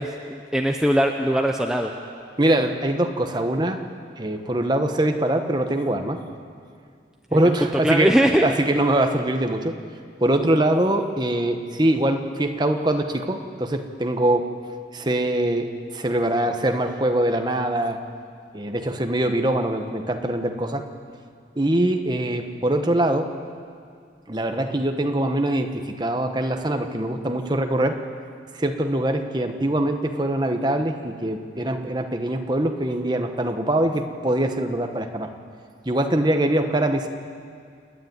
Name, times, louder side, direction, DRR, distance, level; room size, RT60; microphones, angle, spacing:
voice 1, 0.0-1.9 7.3-7.4 7.8-8.5, equal, 5° right, 2 dB, 0.7 m, -21 dB
voice 2, 2.4-3.8 4.2-6.2 7.3-8.1 8.4-9.8 10.2-14.5 14.9-18.0 18.5-20.9 21.6-23.3 24.3-28.0 28.6-35.3 35.8-37.1, right 1 dB, 25° right, 5 dB, 1.1 m, -23 dB
28.5 x 9.8 x 9.5 m, 2.2 s
head